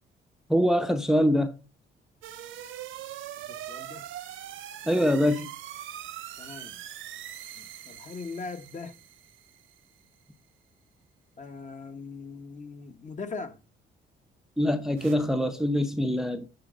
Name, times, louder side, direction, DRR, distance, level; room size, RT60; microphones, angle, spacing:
voice 1, 0.5-1.6 4.9-5.5 14.6-16.5, equal, ahead, 0.7 m, -24 dB
sound 1, 2.2-10.1 15.0-15.2, right 11 dB, 85° right, 1.1 m, -42 dB
voice 2, 3.4-4.0 6.4-6.8 7.5-8.9 11.4-13.6, left 4 dB, 40° left, 1.1 m, -40 dB
9.9 x 4.0 x 5.1 m
cardioid pair, 90°, 20 cm